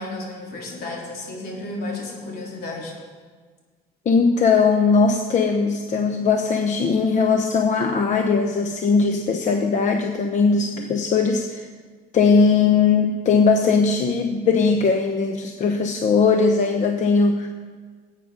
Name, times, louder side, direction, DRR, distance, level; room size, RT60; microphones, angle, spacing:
voice 1, 0.0-3.0, left 2 dB, 70° left, -2 dB, 3.7 m, -33 dB
voice 2, 4.0-11.7 12.1-17.5, left 4 dB, 45° left, 5 dB, 0.9 m, -19 dB
18.0 x 8.7 x 5.1 m, 1.5 s
cardioid pair, 110°, 17 cm